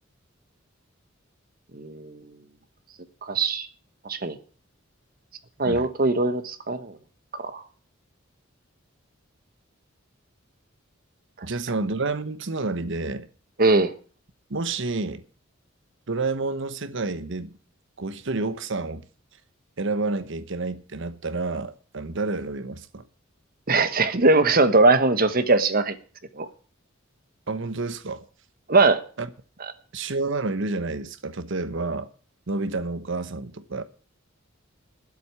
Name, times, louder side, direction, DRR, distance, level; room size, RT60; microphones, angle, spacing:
voice 1, 1.7-2.2 3.2-3.7 4.0-4.4 5.6-6.9 7.4-7.6 13.6-13.9 23.7-25.9 26.3-26.5 28.7-29.0, right 3 dB, 45° right, 1.3 m, -20 dB
voice 2, 11.4-13.3 14.5-15.2 16.1-17.5 18.0-19.0 19.8-23.0 27.5-28.3 29.2-29.3 29.9-32.1 32.5-33.8, right 3 dB, 65° right, 1.1 m, -29 dB
11.5 x 7.9 x 8.5 m
head